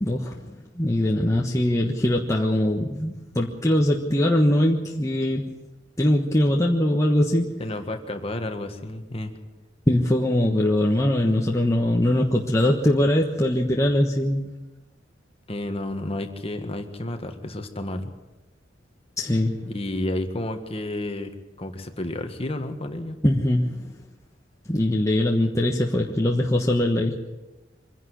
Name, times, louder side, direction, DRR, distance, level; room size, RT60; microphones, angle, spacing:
voice 1, 0.0-5.5 6.0-7.6 9.9-14.5 19.2-19.6 23.2-23.9 24.7-27.1, left 1 dB, 15° left, -1 dB, 1.3 m, -22 dB
voice 2, 7.6-9.3 15.5-18.1 19.7-21.3 21.6-23.2, left 1 dB, 30° left, 6 dB, 1.7 m, -31 dB
24.5 x 11.0 x 9.7 m, 1.1 s
head